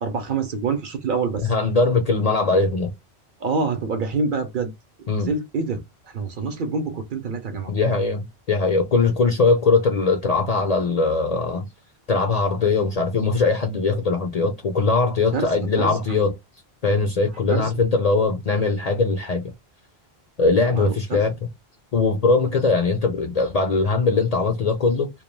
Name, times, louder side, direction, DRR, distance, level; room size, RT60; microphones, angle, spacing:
voice 1, 0.0-1.5 3.4-4.7 5.2-5.8 6.1-7.7 15.3-16.0 17.5-17.7 20.7-21.2, right 4 dB, 60° right, 0.7 m, -26 dB
voice 2, 1.4-2.9 5.1-5.3 7.7-11.7 12.1-16.3 16.8-19.4 20.4-21.3 21.9-25.1, left 3 dB, 55° left, 0.5 m, -21 dB
2.2 x 2.2 x 3.1 m
omnidirectional pair, 1.1 m